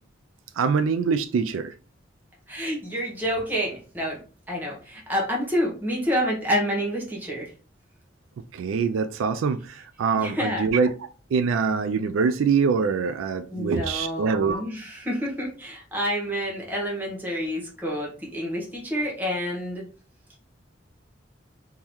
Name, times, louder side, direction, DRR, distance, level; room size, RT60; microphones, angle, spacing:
voice 1, 0.6-1.7 8.5-14.6, right 5 dB, 85° right, 0.3 m, -24 dB
voice 2, 2.5-7.5 10.2-10.6 13.5-19.8, equal, 10° right, 0.9 m, -28 dB
3.7 x 2.7 x 3.0 m
head